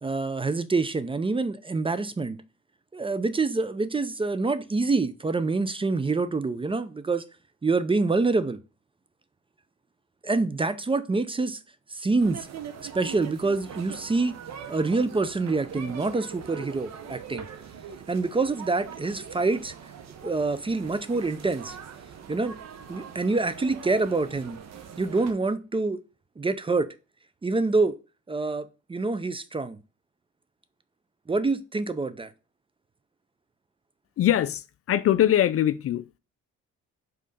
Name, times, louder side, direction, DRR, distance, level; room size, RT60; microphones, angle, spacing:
voice 1, 0.0-2.4 2.9-7.2 7.6-8.6 10.2-11.6 11.9-12.5 12.8-14.4 14.7-17.5 18.1-19.7 20.2-21.8 22.3-22.6 22.9-24.6 25.0-26.0 26.4-26.9 27.4-28.0 28.3-29.8 31.3-32.3, right 3 dB, 20° right, 0.5 m, -26 dB
sound 1, 12.2-25.3, right 7 dB, 60° right, 0.9 m, -42 dB
voice 2, 34.2-36.2, left 11 dB, 50° left, 0.4 m, -23 dB
5.4 x 3.8 x 5.3 m
cardioid pair, 90°, 30 cm